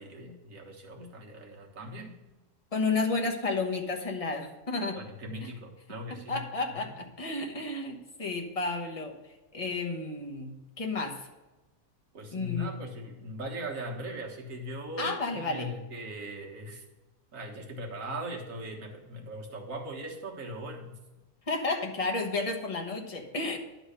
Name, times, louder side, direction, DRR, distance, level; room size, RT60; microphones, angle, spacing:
voice 1, 0.0-2.2 4.9-6.4 6.7-6.9 12.1-16.8 17.3-21.0, equal, 55° right, 0 dB, 1.7 m, -39 dB
voice 2, 2.7-5.0 5.4-5.5 6.3-9.1 9.5-11.3 12.3-12.7 15.0-15.7 21.5-23.6, left 3 dB, 25° left, 2 dB, 1.0 m, -32 dB
11.0 x 4.0 x 6.5 m, 1.1 s
omnidirectional pair, 1.8 m